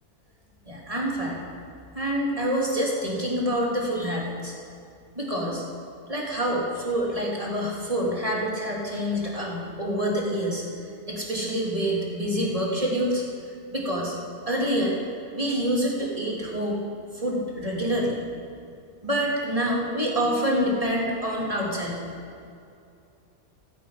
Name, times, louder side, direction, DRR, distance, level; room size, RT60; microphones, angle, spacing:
voice 1, 0.7-1.5 1.9-4.6 5.2-5.6 6.1-10.6 11.1-13.2 13.7-14.2 14.5-15.0 15.3-16.8 17.1-18.2 19.0-22.0, equal, 20° right, -3 dB, 2.9 m, -26 dB
15.0 x 13.5 x 5.1 m, 2.5 s
omnidirectional pair, 1.6 m